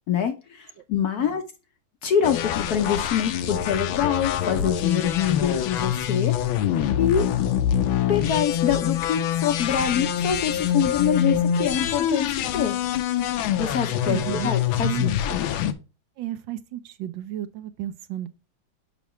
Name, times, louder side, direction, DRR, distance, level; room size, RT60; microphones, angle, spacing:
voice 1, 0.1-1.4 2.0-6.3 7.0-7.3 8.1-12.8 13.6-15.5, left 8 dB, 65° left, 1.0 m, -25 dB
sound 1, 2.2-15.7, left 9 dB, 80° left, 1.5 m, -25 dB
voice 2, 14.0-14.5 14.8-15.1 16.2-18.3, right 12 dB, 75° right, 1.3 m, -32 dB
6.9 x 5.7 x 3.0 m
omnidirectional pair, 2.2 m